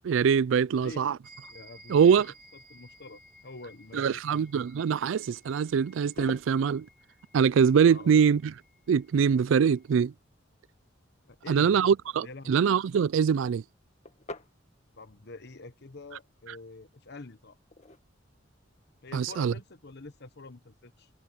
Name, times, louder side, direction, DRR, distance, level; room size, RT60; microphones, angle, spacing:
voice 1, 0.0-1.2 1.9-2.3 3.9-6.9 7.3-8.5 8.9-10.1 11.5-13.6 19.1-19.5, right 7 dB, 80° right, 0.4 m, -23 dB
voice 2, 0.6-1.1 1.5-2.2 2.7-4.2 7.9-8.1 11.3-11.9 12.2-12.6 15.0-17.6 19.0-21.1, left 2 dB, 60° left, 1.2 m, -46 dB
sound 1, 1.2-9.9, equal, 45° right, 4.4 m, -57 dB
sound 2, 6.0-20.4, left 2 dB, 35° left, 1.6 m, -52 dB
head